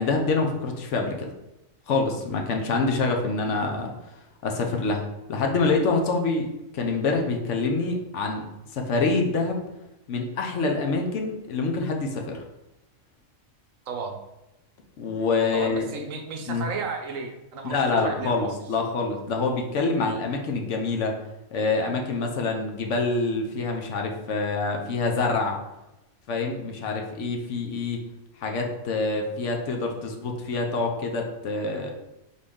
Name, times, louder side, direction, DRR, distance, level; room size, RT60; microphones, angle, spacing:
voice 1, 0.0-1.3 1.9-3.9 4.4-5.0 5.3-6.5 6.7-8.4 8.7-9.6 10.1-12.4 15.0-15.9 16.5-16.6 17.6-21.1 21.5-25.6 26.3-28.0 28.4-31.9, left 3 dB, 65° left, 2 dB, 0.9 m, -26 dB
voice 2, 13.9-14.2 15.5-18.5, right 4 dB, 75° right, 4 dB, 1.0 m, -33 dB
4.1 x 3.2 x 3.5 m, 0.95 s
omnidirectional pair, 1.4 m